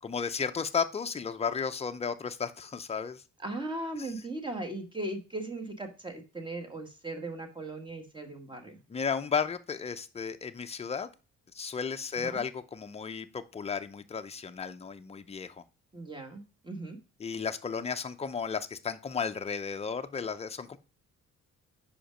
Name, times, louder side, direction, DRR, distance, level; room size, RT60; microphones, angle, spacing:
voice 1, 0.0-3.2 4.0-4.1 8.9-11.1 11.5-15.6 17.2-20.8, left 6 dB, 20° left, 9 dB, 0.6 m, -34 dB
voice 2, 3.4-8.8 12.2-12.4 15.9-17.0, right 2 dB, 15° right, 4 dB, 1.5 m, -38 dB
5.1 x 5.0 x 5.0 m, 0.33 s
cardioid pair, 90°, 30 cm